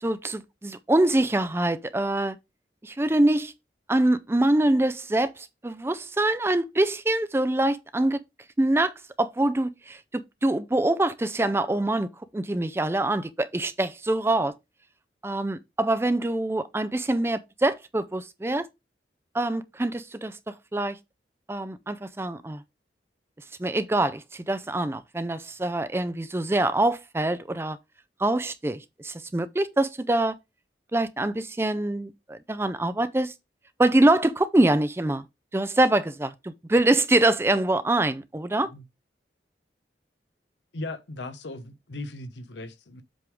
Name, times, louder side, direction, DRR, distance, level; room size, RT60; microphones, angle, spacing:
voice 1, 0.0-2.4 2.8-3.5 3.9-8.2 8.6-8.9 9.2-14.5 15.2-18.7 19.3-21.0 21.5-22.6 23.6-27.8 28.2-30.4 30.9-33.3 33.8-35.2 35.5-38.7, right 1 dB, 15° right, 0.4 m, -24 dB
voice 2, 40.7-43.0, left 2 dB, 90° left, 0.9 m, -38 dB
7.7 x 3.6 x 4.8 m
head